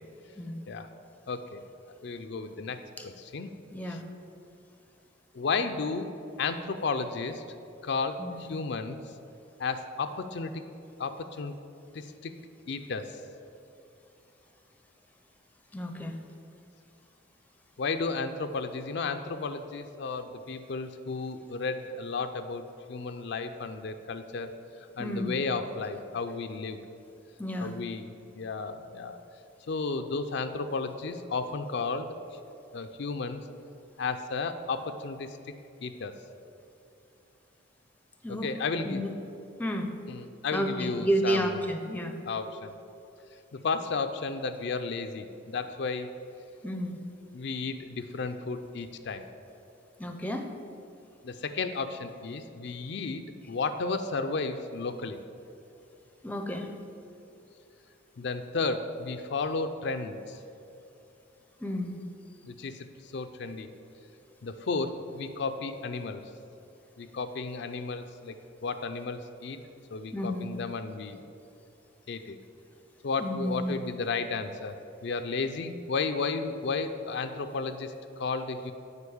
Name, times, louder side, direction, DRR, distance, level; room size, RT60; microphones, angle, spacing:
voice 1, 1.3-1.6 2.0-2.8 3.0-3.5 3.9-4.0 5.3-6.1 6.4-7.4 7.8-9.0 9.6-10.6 11.0-11.5 11.9-12.3 12.7-13.2 17.8-24.5 25.0-26.8 27.6-28.1 28.3-29.2 29.7-32.1 32.7-33.4 34.0-35.3 35.8-36.1 38.4-39.0 40.1-41.7 42.3-42.7 43.5-46.1 47.3-49.3 51.2-55.2 58.2-60.4 62.5-62.9 63.1-63.7 64.4-66.2 67.0-68.3 68.6-69.6 69.9-71.2 72.1-72.4 73.0-74.7 75.0-78.7, left 4 dB, 60° left, 8 dB, 0.4 m, -33 dB
voice 2, 3.7-4.0 8.2-8.5 15.7-16.2 25.0-25.4 27.4-27.8 38.2-38.5 38.8-39.1 39.6-39.9 40.5-42.2 46.6-47.0 50.0-50.5 56.2-56.7 61.6-62.0 70.1-70.5 73.2-73.8, equal, 10° left, 5 dB, 0.5 m, -31 dB
8.1 x 5.2 x 7.0 m, 2.8 s
head